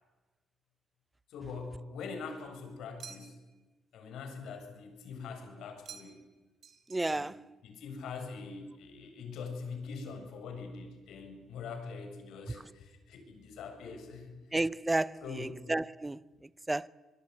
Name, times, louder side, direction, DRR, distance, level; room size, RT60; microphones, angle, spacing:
voice 1, 1.3-3.4 3.9-6.2 7.1-14.4 15.2-15.7, left 4 dB, 80° left, 7.5 m, -43 dB
sound 1, 3.0-3.6 5.8-6.3 6.6-7.4, right 7 dB, 60° right, 3.8 m, -51 dB
voice 2, 6.9-7.4 14.5-16.9, right 2 dB, 15° right, 0.8 m, -32 dB
25.0 x 22.0 x 9.7 m
cardioid pair, 90°, 0 cm